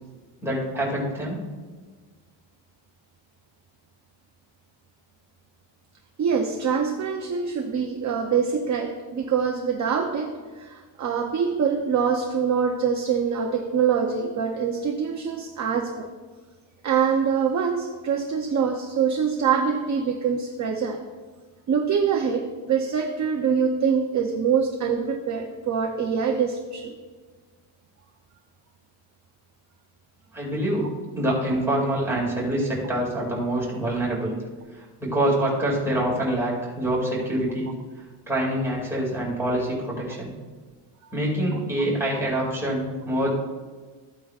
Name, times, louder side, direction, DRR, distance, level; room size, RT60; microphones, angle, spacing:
voice 1, 0.4-1.4 30.3-30.9 31.1-34.4 34.8-37.7 38.3-40.4 41.1-43.4, right 1 dB, 5° right, -5 dB, 2.2 m, -25 dB
voice 2, 6.2-16.1 16.8-21.0 21.7-26.9 42.1-42.2, right 6 dB, 35° right, 3 dB, 0.6 m, -24 dB
14.5 x 8.7 x 2.4 m, 1.4 s
cardioid pair, 175°, 49 cm